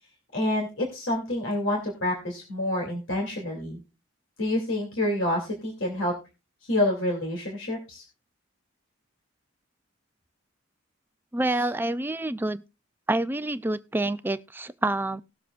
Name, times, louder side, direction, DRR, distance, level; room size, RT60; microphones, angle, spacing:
voice 1, 0.3-3.8 4.4-6.1 6.7-8.0 11.5-11.7, left 1 dB, 75° left, 2.7 m, -28 dB
voice 2, 11.3-12.6 13.1-15.2, right 2 dB, 10° right, 0.4 m, -27 dB
19.5 x 7.1 x 2.5 m
head